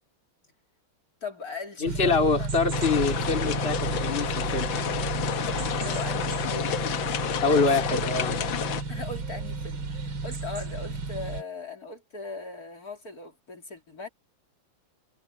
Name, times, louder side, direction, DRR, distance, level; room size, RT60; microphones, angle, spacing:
voice 1, 1.2-2.5 2.8-2.9 5.7-7.0 7.5-7.9 8.9-14.1, left 3 dB, 45° left, 3.3 m, -39 dB
voice 2, 1.8-4.8 7.4-8.4, left 4 dB, 30° left, 2.8 m, -25 dB
sound 1, 1.9-11.4, right 3 dB, 85° right, 3.1 m, -32 dB
sound 2, 2.7-8.8, left 9 dB, 75° left, 1.8 m, -30 dB
omnidirectional pair, 2.1 m